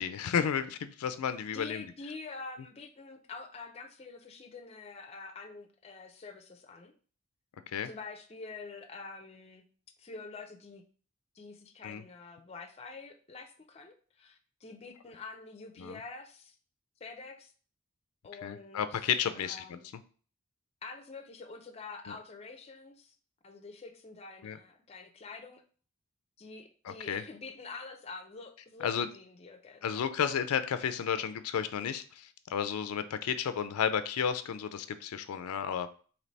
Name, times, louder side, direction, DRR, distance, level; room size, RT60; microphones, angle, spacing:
voice 1, 0.0-1.9 7.7-7.9 11.8-12.0 15.8-16.0 18.4-19.8 22.1-22.2 24.4-24.6 26.9-27.2 28.8-29.1 29.8-35.9, left 8 dB, 90° left, 11 dB, 0.4 m, -32 dB
voice 2, 1.5-6.9 7.8-9.6 10.0-10.8 11.3-16.6 17.0-17.5 18.2-19.9 20.8-23.1 23.4-25.6 26.4-30.2, left 4 dB, 30° left, 6 dB, 0.4 m, -46 dB
3.2 x 2.9 x 4.0 m, 0.41 s
head